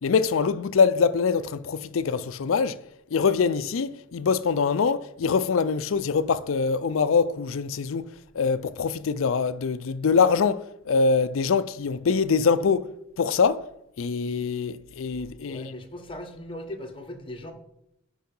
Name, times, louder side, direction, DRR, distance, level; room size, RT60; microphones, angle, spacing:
voice 1, 0.0-2.8 3.1-8.1 8.3-12.9 13.2-13.7 14.0-15.7, left 5 dB, 75° left, 0.4 m, -24 dB
voice 2, 15.4-17.5, left 1 dB, 25° left, 1.1 m, -38 dB
12.0 x 4.8 x 5.4 m
head